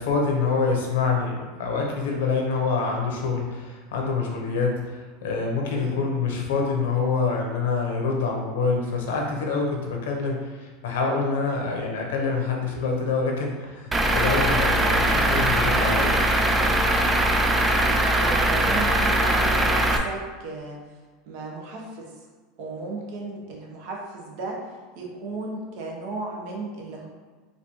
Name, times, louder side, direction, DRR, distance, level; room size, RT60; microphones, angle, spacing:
voice 1, 0.0-16.2, left 4 dB, 85° left, 0 dB, 0.8 m, -26 dB
voice 2, 5.7-6.2 18.2-20.8 21.3-22.1 22.6-24.6 25.0-27.1, right 3 dB, 60° right, 0 dB, 0.8 m, -35 dB
Truck / Idling, 13.9-20.0, right 1 dB, 15° right, 0.3 m, -21 dB
4.1 x 2.6 x 3.0 m, 1.4 s
supercardioid pair, 130°, 0 cm